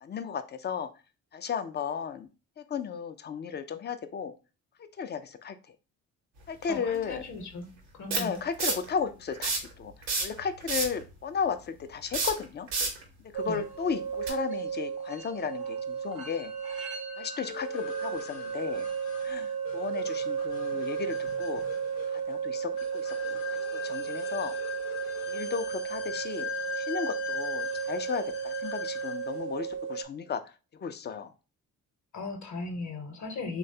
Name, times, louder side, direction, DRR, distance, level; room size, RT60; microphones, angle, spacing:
voice 1, 0.0-0.9 1.3-2.3 2.6-4.3 5.0-5.6 6.5-7.2 8.1-9.9 10.2-12.7 13.3-16.5 17.2-18.9 19.2-21.6 22.1-24.5 25.3-26.5 26.8-30.4 30.8-31.3, left 6 dB, 25° left, 10 dB, 0.3 m, -34 dB
sound 1, 6.6-6.7 8.1-8.9 9.3-9.7 10.0-11.0 12.1-13.0 14.2-14.3, right 4 dB, 80° right, 0.8 m, -29 dB
voice 2, 6.7-7.7 7.9-8.4 13.4-13.6 32.1-33.6, left 3 dB, 45° left, 6 dB, 0.8 m, -37 dB
sound 2, 13.3-30.0, right 7 dB, 60° right, 0.6 m, -34 dB
sound 3, 17.4-29.4, left 7 dB, 85° left, 0.6 m, -41 dB
3.1 x 2.2 x 2.7 m, 0.32 s
hypercardioid pair, 45°, 42 cm